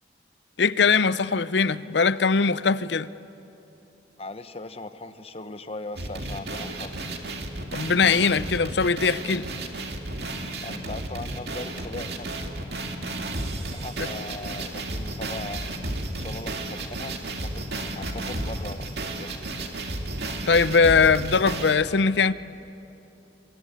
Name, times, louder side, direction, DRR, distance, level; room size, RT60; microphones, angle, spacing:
voice 1, 0.6-3.1 7.7-9.5 14.0-14.1 20.5-22.3, left 5 dB, 80° left, 0.7 m, -21 dB
voice 2, 4.2-7.1 10.6-12.3 13.7-19.3, left 2 dB, 35° left, 1.1 m, -39 dB
sound 1, 5.9-18.7, equal, 15° left, 6.3 m, -54 dB
sound 2, 6.0-21.8, right 2 dB, 65° right, 2.5 m, -32 dB
27.0 x 22.0 x 8.9 m
head